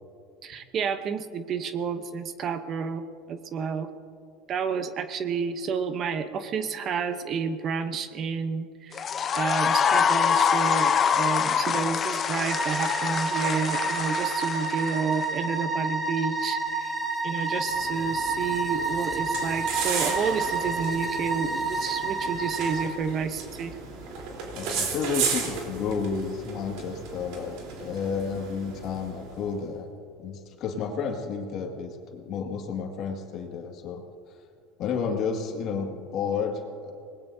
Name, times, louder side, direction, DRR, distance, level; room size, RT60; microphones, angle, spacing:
voice 1, 0.4-3.9 4.5-9.0 9.4-17.0 17.2-23.8, right 6 dB, 40° right, 10 dB, 0.8 m, -30 dB
sound 1, 8.9-15.2, left 7 dB, 30° left, 0.7 m, -25 dB
sound 2, 12.5-22.9, right 3 dB, 15° right, 2.4 m, -29 dB
sound 3, 17.6-29.4, right 5 dB, 70° right, 3.6 m, -35 dB
voice 2, 24.5-29.9 30.2-34.0 34.8-37.1, left 5 dB, 50° left, 2 dB, 2.0 m, -31 dB
25.5 x 19.5 x 2.7 m, 2.4 s
supercardioid pair, 130°, 0 cm